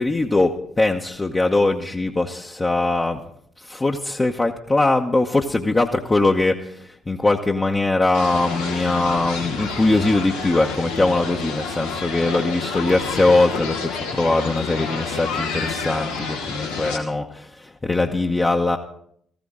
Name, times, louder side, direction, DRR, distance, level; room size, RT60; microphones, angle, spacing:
voice 1, 0.0-3.2 3.6-18.8, left 2 dB, 25° left, 0 dB, 1.0 m, -21 dB
sound 1, 8.1-17.0, left 5 dB, 80° left, 1.7 m, -29 dB
15.5 x 14.5 x 3.8 m, 0.67 s
figure-of-eight pair, 45°, 0 cm